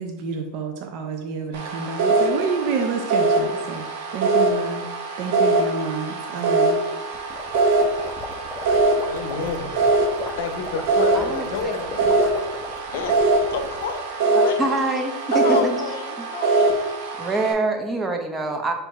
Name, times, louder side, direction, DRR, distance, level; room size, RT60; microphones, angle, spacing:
voice 1, 0.0-3.8 4.1-4.9 5.2-6.8, right 5 dB, 55° right, 3 dB, 0.5 m, -29 dB
sound 1, 1.5-17.5, right 2 dB, 75° right, 0.9 m, -23 dB
sound 2, 7.1-14.0, left 4 dB, 25° left, 0.5 m, -37 dB
voice 2, 9.0-9.7 10.4-12.2 12.9-13.2 13.5-14.8 15.3-16.8, left 5 dB, 80° left, 7 dB, 0.6 m, -31 dB
voice 3, 11.1-11.9 14.3-15.8 16.5-16.6 17.2-18.7, right 2 dB, 15° right, 4 dB, 0.7 m, -26 dB
4.4 x 2.6 x 4.6 m, 0.99 s
supercardioid pair, 130°, 0 cm